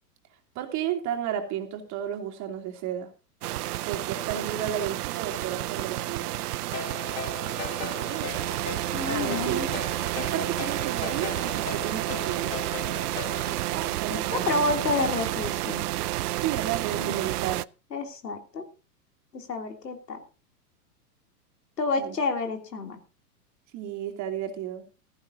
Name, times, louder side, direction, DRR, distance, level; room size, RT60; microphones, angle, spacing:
voice 1, 0.5-3.1 3.8-6.5 7.8-8.5 9.0-9.7 10.2-12.6 13.6-14.7 16.4-17.6 22.0-22.2 23.7-24.8, right 10 dB, 35° right, 4 dB, 2.9 m, -33 dB
sound 1, 3.4-17.6, right 16 dB, 70° right, 0.6 m, -30 dB
Ringtone, 6.7-13.6, left 9 dB, 30° left, 1.6 m, -39 dB
voice 2, 8.9-9.7 14.1-15.9 17.0-17.1 17.9-18.6 19.3-20.2 21.8-23.0, left 3 dB, 90° left, 4 dB, 3.2 m, -29 dB
15.5 x 14.5 x 2.7 m, 0.33 s
hypercardioid pair, 115°, 47 cm